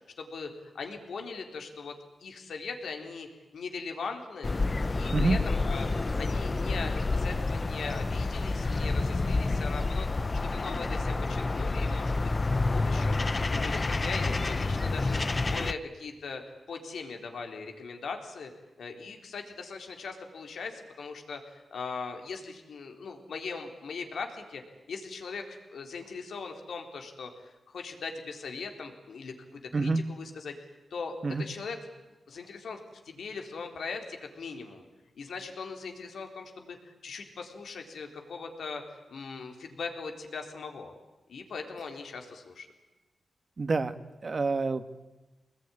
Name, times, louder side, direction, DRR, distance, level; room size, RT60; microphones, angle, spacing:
voice 1, 0.2-1.9 2.2-4.5 4.9-12.3 12.6-15.2 15.5-16.4 16.7-18.5 18.8-24.6 24.9-30.5 30.9-31.8 32.3-34.8 35.2-38.8 39.1-40.9 41.3-42.7, left 4 dB, 80° left, 4 dB, 3.8 m, -40 dB
sound 1, 4.4-15.7, left 3 dB, 35° left, 0.8 m, -29 dB
voice 2, 29.7-30.0 31.2-31.5 43.6-43.9 44.2-45.0, right 3 dB, 45° right, 11 dB, 1.6 m, -27 dB
25.5 x 20.5 x 9.9 m, 1.1 s
cardioid pair, 90°, 0 cm